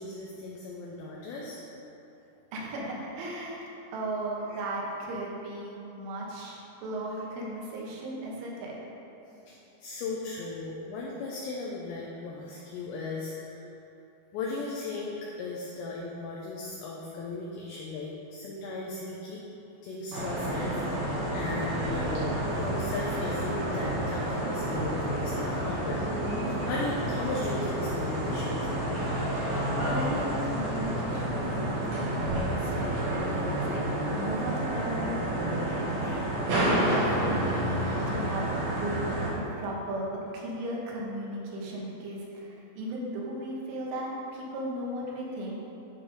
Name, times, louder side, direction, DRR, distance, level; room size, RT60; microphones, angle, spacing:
voice 1, 0.0-1.6 4.5-4.6 9.3-9.5 9.8-13.6 14.3-19.4 19.8-29.1, left 3 dB, 85° left, -3 dB, 2.5 m, -37 dB
voice 2, 2.5-8.8 29.8-33.8 34.2-35.6 36.5-39.1 39.4-45.6, right 1 dB, 75° right, -3 dB, 3.6 m, -36 dB
sound 1, 20.1-39.3, right 1 dB, 60° right, 3.1 m, -30 dB
11.5 x 4.4 x 5.1 m, 3.0 s
omnidirectional pair, 5.9 m